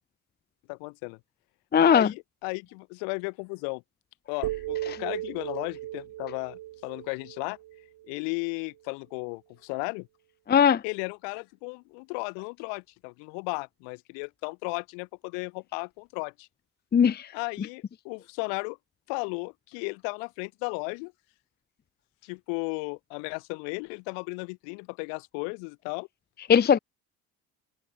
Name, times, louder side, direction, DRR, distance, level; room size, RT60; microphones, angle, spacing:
voice 1, 0.7-1.2 1.8-3.8 4.3-7.6 8.1-10.1 10.8-16.5 17.3-18.8 19.1-21.1 22.2-26.1, left 40 dB or more, 75° left, 6.4 m, -35 dB
voice 2, 1.7-2.1 10.5-10.8 16.9-17.3 26.5-26.8, left 7 dB, 25° left, 0.7 m, -19 dB
sound 1, 4.4-8.5, right 15 dB, 60° right, 2.4 m, -37 dB
hypercardioid pair, 60°, 44 cm